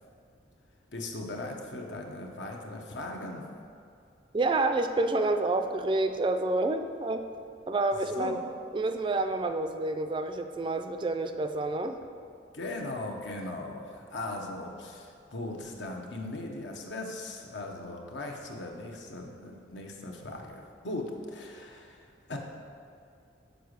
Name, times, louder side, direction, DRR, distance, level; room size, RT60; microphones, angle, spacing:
voice 1, 0.9-3.4 8.2-8.4 12.5-22.4, left 2 dB, 75° left, 1 dB, 1.0 m, -38 dB
voice 2, 4.3-7.2 7.7-8.4 8.7-12.0, right 2 dB, 25° right, 7 dB, 0.3 m, -28 dB
6.6 x 4.9 x 6.5 m, 2.5 s
head